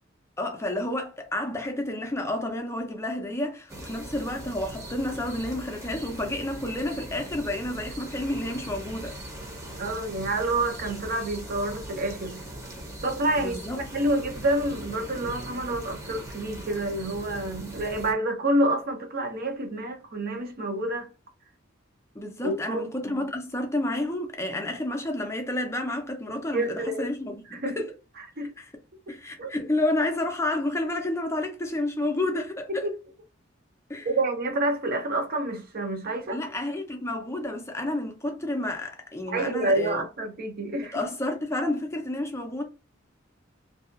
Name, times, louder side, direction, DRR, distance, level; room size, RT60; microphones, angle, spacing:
voice 1, 0.4-9.2 13.4-13.8 22.1-27.9 28.6-28.7 29.1-32.9 33.9-34.1 36.3-40.0 40.9-42.6, left 1 dB, 15° left, 0.5 m, -30 dB
sound 1, 3.7-18.1, right 1 dB, 15° right, 0.8 m, -40 dB
voice 2, 9.8-12.4 13.0-21.1 22.4-22.9 26.5-27.8 28.4-28.5 29.1-29.2 29.4-29.5 32.7-32.9 34.0-36.4 39.3-41.0, right 1 dB, 50° right, 0.7 m, -28 dB
2.7 x 2.3 x 2.4 m
head